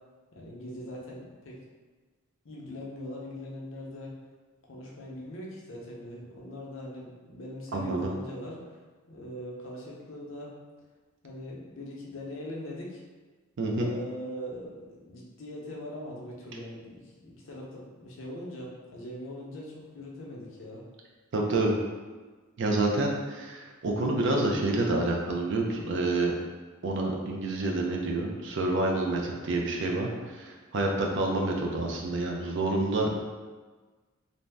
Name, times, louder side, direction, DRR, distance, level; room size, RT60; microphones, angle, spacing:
voice 1, 0.3-1.6 2.4-4.2 4.7-8.8 9.1-10.5 11.2-13.0 13.7-20.8, equal, 65° left, -4 dB, 0.6 m, -41 dB
voice 2, 7.7-8.1 13.6-13.9 21.3-21.8 22.6-26.3 26.8-33.1, right 2 dB, 60° right, 0 dB, 0.4 m, -28 dB
2.6 x 2.0 x 3.3 m, 1.3 s
head